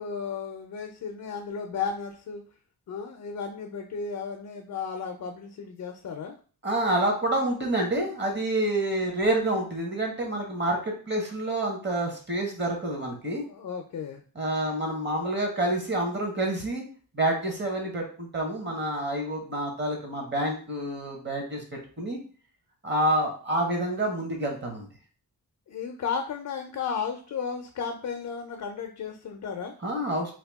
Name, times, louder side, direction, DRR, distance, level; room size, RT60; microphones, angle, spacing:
voice 1, 0.0-2.4 2.9-6.3 13.4-14.2 25.7-29.7, left 6 dB, 55° left, 4 dB, 0.5 m, -34 dB
voice 2, 6.6-13.4 14.3-16.8 17.1-21.6 22.0-22.2 22.8-24.9 29.8-30.3, right 1 dB, 30° right, 1 dB, 1.2 m, -28 dB
2.8 x 2.3 x 3.4 m, 0.40 s
wide cardioid pair, 95°, 38 cm